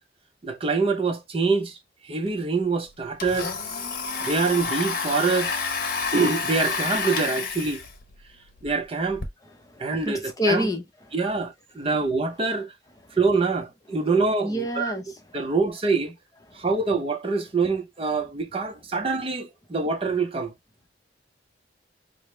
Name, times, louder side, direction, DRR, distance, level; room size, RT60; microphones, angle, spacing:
voice 1, 0.4-1.8 2.0-3.5 4.2-5.6 6.1-7.8 8.6-9.2 9.8-10.7 11.1-12.7 13.2-15.0 15.3-16.1 16.5-20.5, right 4 dB, 30° right, 0.6 m, -25 dB
Domestic sounds home sounds, 2.3-2.4 2.6-9.3, left 4 dB, 50° left, 0.8 m, -30 dB
voice 2, 9.6-11.1 14.4-15.4 16.5-16.6, left 1 dB, 20° left, 0.7 m, -29 dB
4.8 x 2.0 x 3.1 m
head